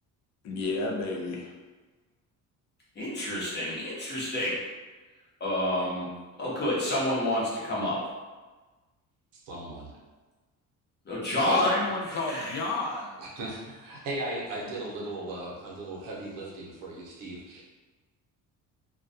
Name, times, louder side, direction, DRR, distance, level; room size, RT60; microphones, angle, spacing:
voice 1, 0.4-1.5 11.6-13.2, left 3 dB, 55° left, 1 dB, 0.4 m, -31 dB
voice 2, 3.0-4.6 5.4-6.1 6.4-8.0 11.1-11.8 12.2-12.6, left 1 dB, 30° left, -6 dB, 0.8 m, -28 dB
voice 3, 9.4-9.9 11.5-11.7 13.2-17.6, right 2 dB, 85° right, -3 dB, 0.7 m, -37 dB
2.2 x 2.2 x 2.6 m, 1.3 s
cardioid pair, 145°, 32 cm